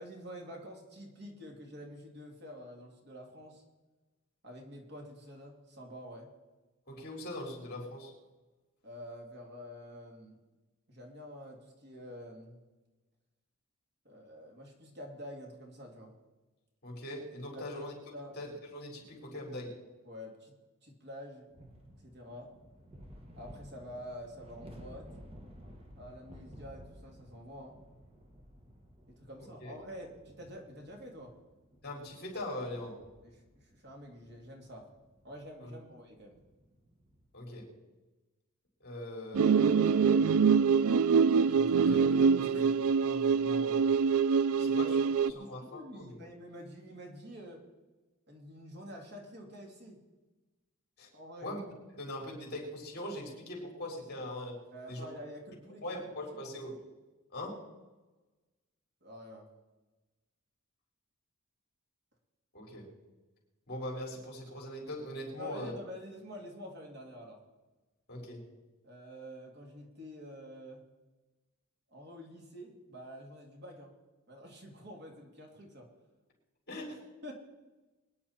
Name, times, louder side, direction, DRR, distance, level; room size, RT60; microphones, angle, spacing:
voice 1, 0.0-3.6 4.4-6.3 8.8-10.4 10.9-12.6 14.0-16.1 17.5-17.8 18.1-18.4 20.0-20.5 20.8-21.5 22.0-22.5 23.4-25.1 26.0-27.8 29.1-31.3 33.2-34.9 35.2-36.4 42.5-42.7 44.5-47.6 48.3-50.0 51.1-51.5 54.7-55.9 56.4-56.6 59.0-59.5 65.4-67.4 68.8-70.8 71.9-73.9 74.3-75.9 77.2-77.3, equal, 50° right, 1 dB, 2.8 m, -48 dB
voice 2, 6.9-8.1 16.8-17.9 18.4-19.8 29.6-29.7 31.8-33.0 35.6-35.7 37.3-37.7 38.8-40.5 41.4-44.0 44.6-46.2 51.0-51.1 51.4-51.6 51.9-54.6 54.9-55.1 55.8-56.8 57.3-57.7 62.5-62.9 63.7-65.7 68.1-68.5 76.7-77.0, left 1 dB, 50° left, -1 dB, 4.7 m, -41 dB
sound 1, 21.5-37.3, equal, 25° right, 1.9 m, -55 dB
sound 2, 39.3-45.3, right 6 dB, 70° right, 0.4 m, -25 dB
24.0 x 10.0 x 4.4 m, 1.2 s
head